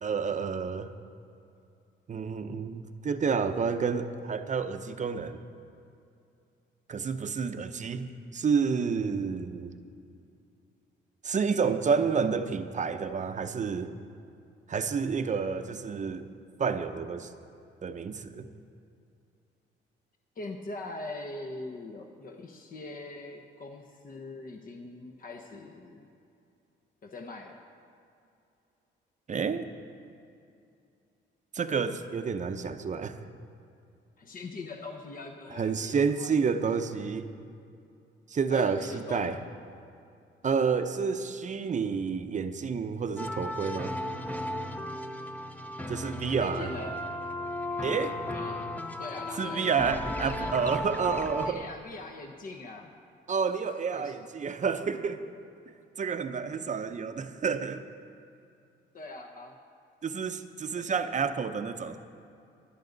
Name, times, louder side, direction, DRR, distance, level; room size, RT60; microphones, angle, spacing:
voice 1, 0.0-0.9 2.1-5.4 6.9-9.7 11.2-13.9 14.7-16.3 16.6-17.3 17.8-18.5 29.3-29.7 31.5-33.2 35.5-37.3 38.3-39.4 40.4-43.9 45.9-46.7 47.8-48.2 49.4-51.6 53.3-55.2 56.0-57.8 60.0-62.0, right 5 dB, 40° right, 8 dB, 0.7 m, -29 dB
voice 2, 20.4-26.1 27.0-27.6 34.2-36.3 38.5-39.6 46.4-47.0 48.3-48.7 49.0-49.8 50.2-50.8 51.4-52.9 53.9-54.1 58.9-59.5 60.8-60.9, left 2 dB, 45° left, 3 dB, 1.0 m, -42 dB
sound 1, 43.2-51.5, left 1 dB, 10° left, 0.7 m, -35 dB
24.0 x 8.4 x 4.0 m, 2.5 s
cardioid pair, 90°, 20 cm